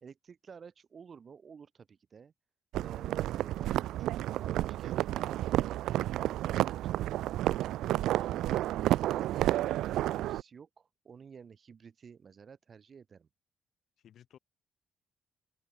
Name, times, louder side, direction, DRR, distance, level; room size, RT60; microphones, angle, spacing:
voice 1, 0.0-2.3 2.7-5.8 6.1-13.3, right 6 dB, 45° right, 1.4 m, -52 dB
sound 1, 2.7-10.4, right 14 dB, 85° right, 0.3 m, -31 dB
voice 2, 14.0-14.4, left 10 dB, 70° left, 1.4 m, -58 dB
open air
cardioid pair, 90°, 0 cm